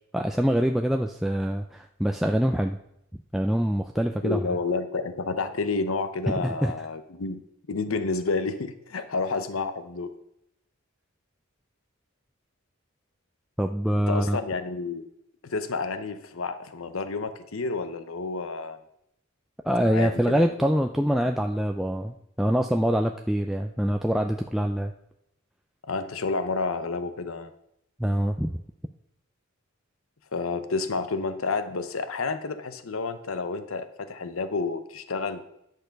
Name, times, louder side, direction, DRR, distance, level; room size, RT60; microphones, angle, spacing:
voice 1, 0.1-2.8 3.3-4.5 6.3-6.7 13.6-14.4 19.6-24.9 28.0-28.6, equal, ahead, 3 dB, 0.4 m, -25 dB
voice 2, 4.2-7.4 7.7-10.1 14.1-15.0 15.4-18.8 19.9-20.5 25.9-27.5 30.3-35.4, left 4 dB, 75° left, 11 dB, 0.8 m, -30 dB
10.5 x 6.5 x 5.2 m, 0.78 s
head